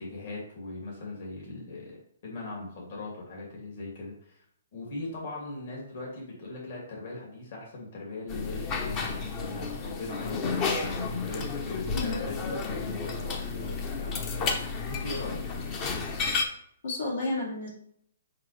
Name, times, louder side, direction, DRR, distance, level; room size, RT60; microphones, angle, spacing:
voice 1, 0.0-4.4 4.7-15.4, left 2 dB, 55° left, -3 dB, 2.5 m, -40 dB
sound 1, 8.3-16.5, left 4 dB, 25° left, 0.7 m, -32 dB
voice 2, 11.9-12.2 16.4-16.5 16.8-17.7, left 2 dB, 75° left, -4 dB, 2.4 m, -31 dB
5.8 x 5.1 x 3.3 m, 0.66 s
hypercardioid pair, 155°, 0 cm